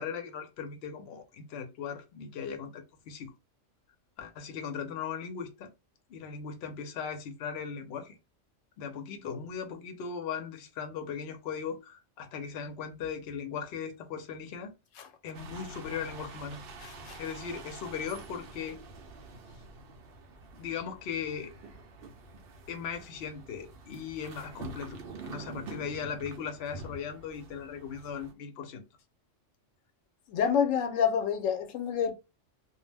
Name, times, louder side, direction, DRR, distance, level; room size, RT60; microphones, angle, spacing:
voice 1, 0.0-3.3 4.2-5.7 6.1-8.2 8.8-14.7 15.2-16.6 17.2-18.8 20.6-21.5 22.7-28.8, left 7 dB, 60° left, 0.8 m, -38 dB
sound 1, 15.3-28.3, right 3 dB, 60° right, 0.7 m, -47 dB
voice 2, 16.8-17.2 30.3-32.1, left 7 dB, 90° left, 1.0 m, -28 dB
2.4 x 2.0 x 3.2 m
omnidirectional pair, 1.3 m